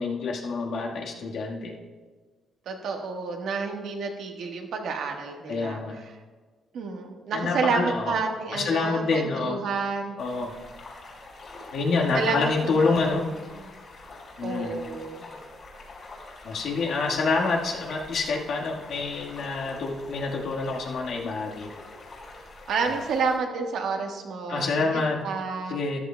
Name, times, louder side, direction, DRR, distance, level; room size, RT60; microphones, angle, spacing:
voice 1, 0.0-1.8 5.5-6.0 7.3-8.2 8.5-9.6 10.2-10.5 11.7-13.2 14.4-14.7 16.4-21.7 24.5-25.2 25.7-26.0, left 4 dB, 70° left, -1 dB, 1.5 m, -27 dB
voice 2, 2.6-5.8 6.7-10.2 12.1-13.2 13.5-13.6 14.4-15.3 22.7-25.8, right 4 dB, 75° right, 3 dB, 1.3 m, -30 dB
sound 1, 10.2-23.4, left 2 dB, 50° left, 3.3 m, -45 dB
14.0 x 11.0 x 2.2 m, 1.4 s
cardioid pair, 90°, 0 cm